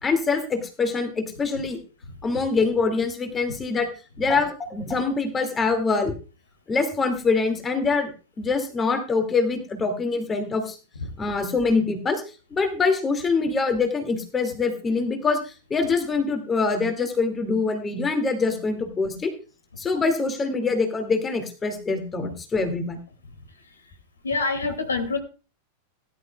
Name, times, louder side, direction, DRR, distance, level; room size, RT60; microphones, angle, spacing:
voice 1, 0.0-1.8 2.2-3.9 4.2-6.1 6.7-8.1 8.4-10.8 11.2-12.2 12.5-19.3 19.8-23.0, left 4 dB, 20° left, 6 dB, 2.3 m, -24 dB
voice 2, 24.2-25.2, left 4 dB, 75° left, 6 dB, 2.4 m, -25 dB
18.5 x 11.5 x 2.3 m, 0.33 s
figure-of-eight pair, 90°, 0 cm